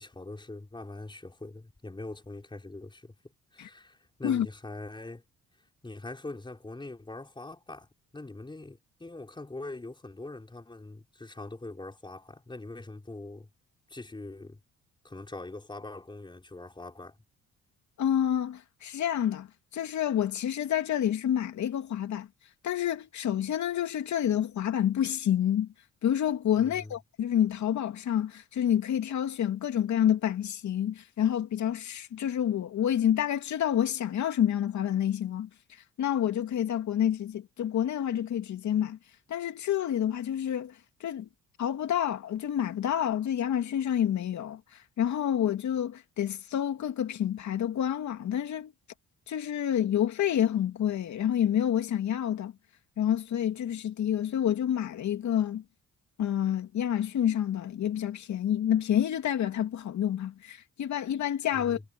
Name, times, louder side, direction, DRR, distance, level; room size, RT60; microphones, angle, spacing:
voice 1, 0.0-3.1 3.5-5.2 5.8-7.9 8.1-13.5 13.9-14.6 15.0-17.2 26.6-26.9 61.5-61.8, left 2 dB, 15° left, 4.6 m, -43 dB
voice 2, 18.0-19.5 19.7-22.3 22.6-25.7 26.0-35.5 36.0-39.0 39.3-40.7 41.0-41.3 41.6-44.6 45.0-48.7 49.3-52.5 53.0-55.6 56.2-61.8, left 10 dB, 70° left, 2.7 m, -28 dB
cardioid pair, 90°, 30 cm